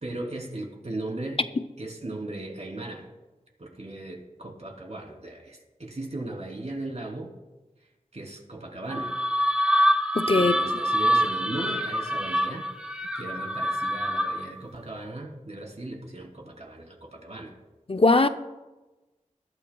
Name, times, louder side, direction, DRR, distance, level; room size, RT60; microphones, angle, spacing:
voice 1, 0.0-1.4 1.8-3.1 3.6-7.3 7.8-9.2 10.3-12.7 13.1-17.5, right 2 dB, 55° right, 3.2 m, -37 dB
sound 1, 8.9-14.6, equal, 5° right, 1.3 m, -25 dB
voice 2, 10.1-10.6 17.9-18.3, left 3 dB, 45° left, 0.6 m, -20 dB
21.0 x 12.5 x 2.3 m
wide cardioid pair, 50°, 13 cm